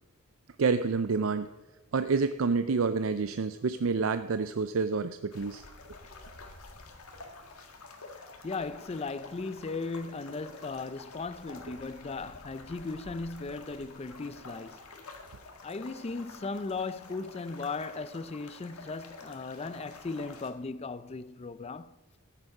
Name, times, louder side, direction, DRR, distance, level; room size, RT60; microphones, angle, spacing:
voice 1, 0.6-1.5 1.9-5.6, right 4 dB, 65° right, 0.5 m, -28 dB
sound 1, 5.3-20.5, left 3 dB, 85° left, 1.8 m, -49 dB
voice 2, 8.4-14.9 15.6-22.0, left 3 dB, 30° left, 0.4 m, -37 dB
14.5 x 10.0 x 5.5 m
head